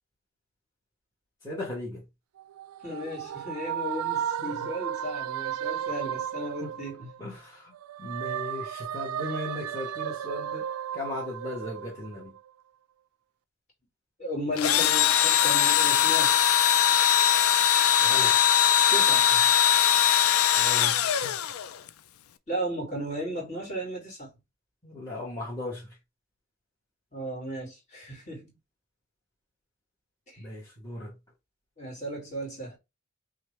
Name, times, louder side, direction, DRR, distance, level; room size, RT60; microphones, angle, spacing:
voice 1, 1.4-2.0 4.4-4.7 6.6-6.7 7.0-12.4 18.0-18.4 19.1-19.4 20.5-21.3 24.8-26.0 30.4-31.2, left 2 dB, 15° left, 1.5 m, -38 dB
sound 1, 2.4-7.4 7.7-12.5, right 9 dB, 90° right, 0.3 m, -34 dB
voice 2, 2.8-7.1 14.2-16.4 18.9-19.3 22.5-24.3 27.1-28.6 30.3-30.5 31.8-32.8, equal, 35° left, 2.3 m, -35 dB
Engine / Drill, 14.6-21.9, left 10 dB, 85° left, 0.5 m, -21 dB
5.7 x 2.4 x 3.3 m
head